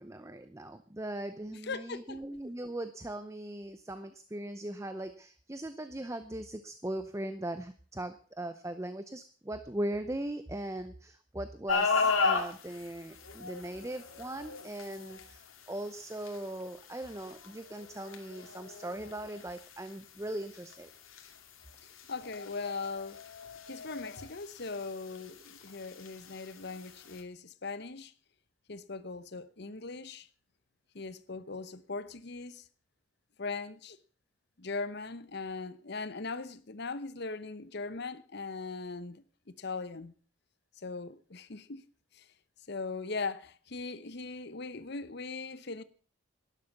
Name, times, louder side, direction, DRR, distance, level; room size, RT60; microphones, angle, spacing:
voice 1, 0.0-20.9, right 1 dB, 15° right, 0.7 m, -39 dB
voice 2, 1.6-2.2 21.8-23.2 23.7-28.1 28.7-30.3 30.9-32.7 33.4-34.0 34.6-39.2 39.6-40.1 40.8-41.8 42.1-42.3 42.7-45.8, left 4 dB, 50° left, 0.9 m, -39 dB
sound 1, 11.7-27.2, left 4 dB, 80° left, 2.5 m, -37 dB
12.0 x 11.0 x 7.1 m
head